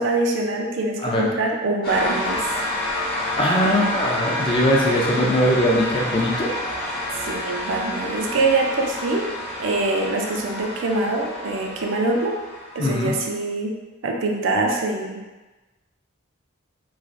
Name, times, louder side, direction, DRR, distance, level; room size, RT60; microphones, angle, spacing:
voice 1, 0.0-2.6 3.6-3.8 7.2-9.3 9.6-12.3 12.7-13.7 14.0-15.2, right 2 dB, 75° right, 1 dB, 0.4 m, -24 dB
sound 1, 1.8-13.3, left 1 dB, 50° left, 0.8 m, -29 dB
voice 2, 3.4-6.5 12.8-13.1, equal, 25° left, -2 dB, 0.4 m, -21 dB
3.2 x 2.4 x 2.5 m, 1.2 s
head